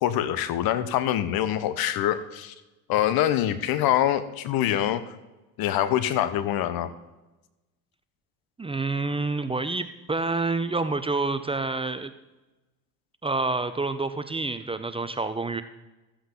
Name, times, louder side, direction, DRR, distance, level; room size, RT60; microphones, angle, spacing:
voice 1, 0.0-2.5 2.9-5.0 5.6-6.9, left 11 dB, 60° left, 14 dB, 1.0 m, -25 dB
voice 2, 8.6-12.1 13.2-15.6, right 3 dB, 15° right, 11 dB, 0.6 m, -28 dB
14.0 x 8.1 x 3.8 m, 1.1 s
hypercardioid pair, 80°, 41 cm